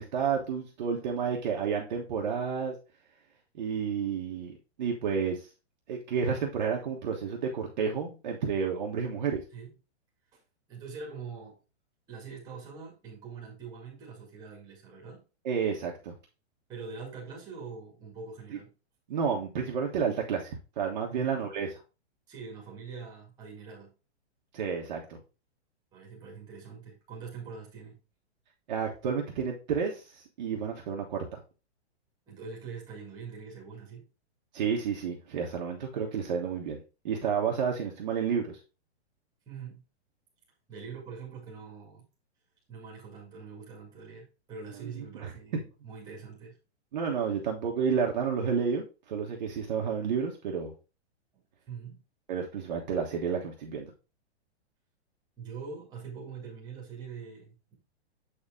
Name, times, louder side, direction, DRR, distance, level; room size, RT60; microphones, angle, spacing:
voice 1, 0.0-2.7 3.6-5.4 5.9-9.4 15.4-16.1 19.1-21.8 24.5-25.2 28.7-31.4 34.5-36.8 37.0-38.6 45.0-45.6 46.9-50.7 52.3-53.9, right 6 dB, 40° right, 0 dB, 1.3 m, -31 dB
voice 2, 10.7-11.6 12.1-15.2 16.7-18.7 21.1-21.4 22.3-23.9 25.9-28.0 32.3-34.0 39.5-39.8 40.7-42.0 42.7-46.6 51.3-52.0 55.4-57.7, right 5 dB, 10° right, -2 dB, 2.0 m, -44 dB
7.8 x 4.3 x 3.6 m, 0.31 s
hypercardioid pair, 175°, 34 cm